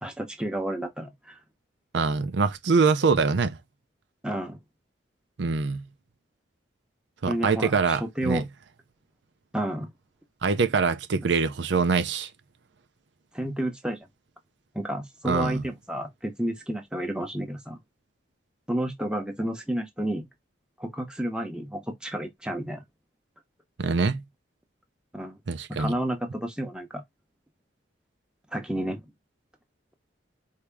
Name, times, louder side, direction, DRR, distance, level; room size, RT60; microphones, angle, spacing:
voice 1, 0.0-1.4 4.2-4.6 7.3-8.5 9.5-9.9 13.3-14.0 14.7-17.8 18.7-20.3 20.8-22.8 25.1-25.4 25.8-27.0 28.5-29.0, right 1 dB, 5° right, 0.8 m, -31 dB
voice 2, 1.9-3.6 5.4-5.8 7.2-8.4 10.4-12.3 15.2-15.6 23.8-24.2 25.5-25.9, right 4 dB, 70° right, 0.6 m, -24 dB
4.7 x 2.8 x 3.4 m
head